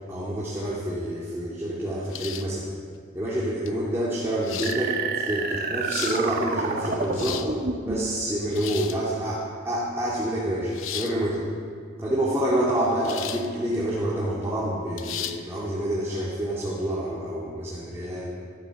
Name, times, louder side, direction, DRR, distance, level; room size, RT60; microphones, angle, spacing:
voice 1, 0.1-2.7 3.1-7.5 7.9-11.5 12.0-18.3, right 1 dB, 15° right, -7 dB, 2.4 m, -27 dB
sound 1, 2.1-2.6 3.7-3.8 4.4-4.8 5.6-6.2 7.0-7.5 8.5-9.0 10.7-11.2 13.1-13.5 13.9-14.0 15.0-15.4, left 10 dB, 85° left, 0.8 m, -34 dB
sound 2, 4.6-8.2, right 4 dB, 45° right, 1.5 m, -29 dB
14.0 x 12.5 x 7.0 m, 2.2 s
head